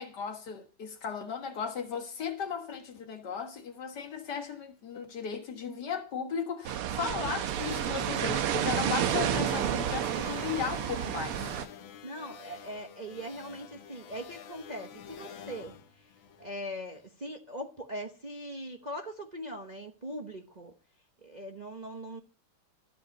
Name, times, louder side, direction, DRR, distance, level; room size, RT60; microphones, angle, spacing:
voice 1, 0.0-11.5, left 6 dB, 50° left, 2.0 m, -36 dB
sound 1, 6.6-11.7, right 10 dB, 85° right, 1.7 m, -30 dB
sound 2, 7.4-16.9, left 7 dB, 65° left, 1.6 m, -47 dB
voice 2, 12.0-15.7 16.4-20.7 21.2-22.2, equal, 40° right, 0.6 m, -41 dB
13.5 x 5.5 x 7.1 m
omnidirectional pair, 2.4 m